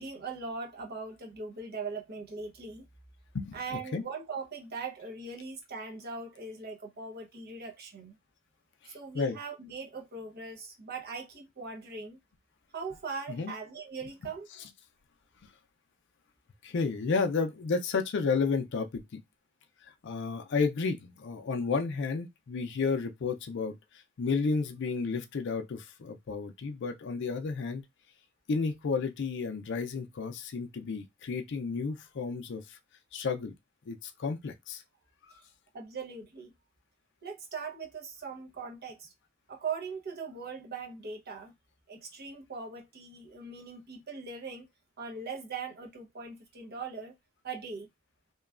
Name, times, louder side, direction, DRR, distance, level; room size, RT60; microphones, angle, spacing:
voice 1, 0.0-2.9 3.5-8.1 8.8-12.2 12.7-14.5 35.7-36.5 37.2-39.1 39.5-41.5 41.9-44.7 45.0-47.1 47.4-47.9, right 4 dB, 50° right, 0.8 m, -40 dB
voice 2, 16.6-19.2 20.0-23.8 24.2-27.8 28.5-32.8 33.1-33.5 33.9-34.8, left 4 dB, 60° left, 0.4 m, -32 dB
3.0 x 2.2 x 2.3 m
head